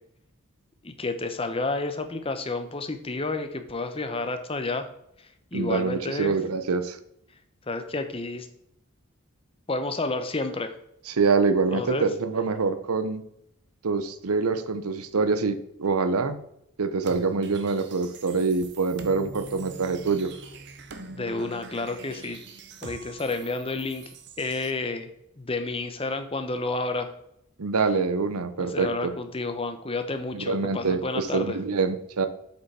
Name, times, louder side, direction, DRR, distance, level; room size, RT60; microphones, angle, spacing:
voice 1, 0.8-4.9 5.2-6.4 7.7-8.5 9.7-10.7 11.7-12.1 21.1-22.4 22.8-25.1 25.4-27.1 28.6-31.6, left 3 dB, 25° left, 8 dB, 0.7 m, -30 dB
voice 2, 5.5-7.0 11.1-13.2 13.8-16.4 16.8-20.3 27.6-29.1 30.3-32.3, right 4 dB, 85° right, 10 dB, 0.7 m, -25 dB
sound 1, 17.0-24.7, right 3 dB, 50° right, 0.8 m, -44 dB
7.9 x 5.7 x 4.2 m, 0.75 s
head